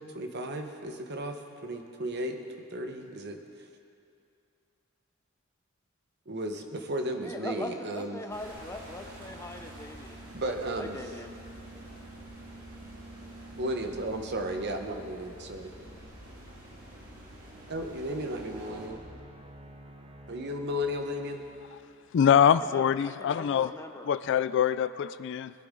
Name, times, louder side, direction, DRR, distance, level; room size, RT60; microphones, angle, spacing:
voice 1, 0.0-2.4 2.7-3.4 6.3-8.2 10.3-11.1 13.5-15.7 17.7-19.0 20.3-21.4, equal, 55° right, 4 dB, 1.1 m, -34 dB
voice 2, 7.2-10.2 10.8-11.4 22.6-24.1, left 2 dB, 15° left, 5 dB, 0.7 m, -41 dB
sound 1, 8.3-18.9, right 1 dB, 90° right, 2.7 m, -47 dB
sound 2, 15.7-22.2, right 1 dB, 25° right, 0.8 m, -51 dB
voice 3, 22.1-23.7 24.0-25.5, left 8 dB, 60° left, 15 dB, 0.3 m, -24 dB
20.5 x 11.5 x 3.8 m, 2.5 s
head